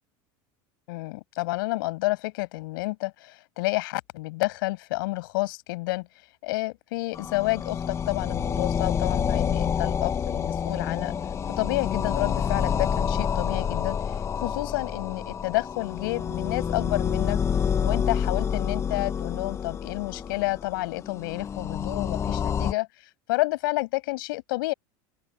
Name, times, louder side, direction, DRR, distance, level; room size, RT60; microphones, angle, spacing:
voice 1, 0.9-6.1 6.4-11.1 11.5-17.4 17.8-22.9 23.3-24.7, left 22 dB, 85° left, 6.9 m, -30 dB
sound 1, 7.1-22.7, left 7 dB, 25° left, 1.1 m, -28 dB
open air
supercardioid pair, 135°, 11 cm